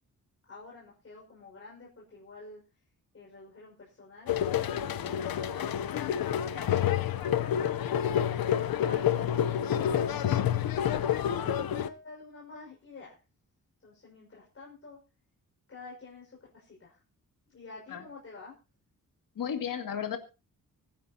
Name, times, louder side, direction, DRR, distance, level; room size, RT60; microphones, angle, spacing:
voice 1, 0.5-2.6 3.1-4.3 4.9-5.7 6.4-10.5 11.2-13.1 13.8-15.0 15.7-17.0 17.5-18.5, left 3 dB, 40° left, -3 dB, 5.7 m, -49 dB
sound 1, 4.3-11.9, left 10 dB, 85° left, 0.9 m, -28 dB
voice 2, 19.4-20.2, left 8 dB, 70° left, 6 dB, 2.4 m, -33 dB
24.0 x 10.0 x 2.9 m, 0.31 s
wide cardioid pair, 130°, 35 cm